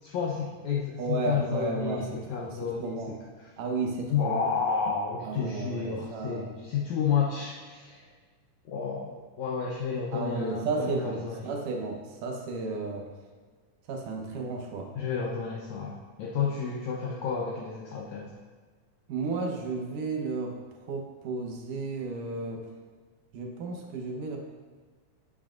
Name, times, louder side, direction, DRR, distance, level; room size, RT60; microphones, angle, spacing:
voice 1, 0.0-3.0 3.4-3.5 4.1-8.0 8.7-11.5 15.0-18.3, left 6 dB, 70° left, -3 dB, 2.0 m, -31 dB
voice 2, 1.0-3.2 3.6-4.5 5.2-6.5 10.1-13.1 13.9-14.9 19.1-20.6 20.9-22.7 23.3-24.4, right 3 dB, 80° right, 2 dB, 2.6 m, -33 dB
12.5 x 8.7 x 2.5 m, 1.5 s
omnidirectional pair, 3.7 m